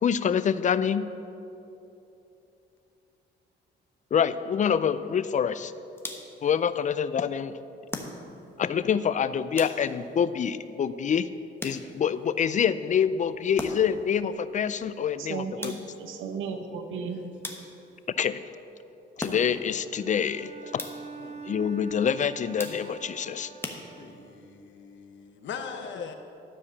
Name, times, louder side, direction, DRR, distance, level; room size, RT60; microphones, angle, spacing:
voice 1, 0.0-1.1 4.1-5.7 6.4-7.6 8.6-11.3 11.6-15.7 18.2-18.4 19.2-20.8 21.5-23.5 26.0-26.1, left 7 dB, 40° left, 14 dB, 0.4 m, -26 dB
sound 1, 6.0-6.5 7.9-8.6 9.6-10.2 11.6-12.2 13.6-14.1 15.6-16.1 17.4-18.0 19.2-19.8 20.8-21.2 22.6-23.1 23.6-24.4, left 1 dB, 10° left, 1.1 m, -39 dB
voice 2, 15.2-17.2, right 6 dB, 85° right, 6 dB, 1.0 m, -35 dB
Bowed string instrument, 19.9-24.5, right 4 dB, 35° right, 1.5 m, -44 dB
voice 3, 24.0-26.2, left 6 dB, 70° left, 6 dB, 1.0 m, -41 dB
12.5 x 4.8 x 7.3 m, 2.9 s
cardioid pair, 90°, 20 cm